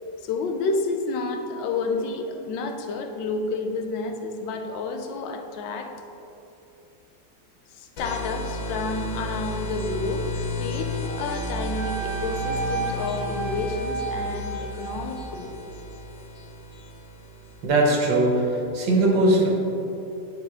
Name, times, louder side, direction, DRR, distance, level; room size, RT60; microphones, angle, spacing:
voice 1, 0.2-5.9 7.7-10.2 10.6-15.5, left 3 dB, 80° left, 5 dB, 1.3 m, -30 dB
sound 1, 8.0-17.7, equal, 60° left, 1.3 m, -33 dB
Wind instrument woodwind instrument, 11.0-15.3, right 4 dB, 35° left, 1.8 m, -33 dB
voice 2, 17.6-19.5, right 1 dB, 75° right, -1 dB, 1.8 m, -20 dB
9.6 x 4.5 x 3.7 m, 2.9 s
omnidirectional pair, 2.0 m